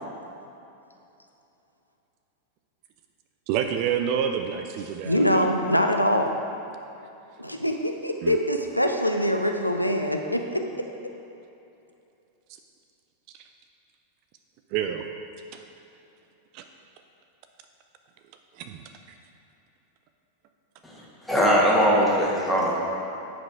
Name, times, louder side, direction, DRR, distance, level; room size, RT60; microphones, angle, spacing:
voice 1, 3.5-5.5 8.2-8.4 13.3-13.5 14.7-15.1 15.5-15.6 16.5-16.6 18.5-18.9, right 8 dB, 45° right, 6 dB, 0.4 m, -28 dB
voice 2, 5.0-6.4 7.4-10.6, equal, 90° left, 4 dB, 0.5 m, -24 dB
voice 3, 20.8-22.8, equal, ahead, -6 dB, 1.7 m, -21 dB
8.8 x 5.1 x 4.7 m, 2.8 s
figure-of-eight pair, 90°, 0 cm